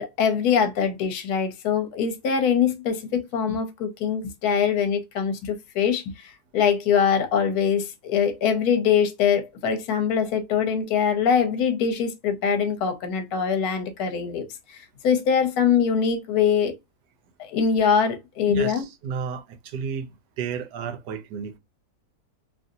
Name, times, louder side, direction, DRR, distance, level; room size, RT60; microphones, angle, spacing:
voice 1, 0.0-16.7 17.4-18.8, left 7 dB, 70° left, 1.1 m, -23 dB
voice 2, 18.5-20.1 20.4-21.6, right 6 dB, 80° right, 1.2 m, -32 dB
2.9 x 2.5 x 2.6 m
omnidirectional pair, 1.8 m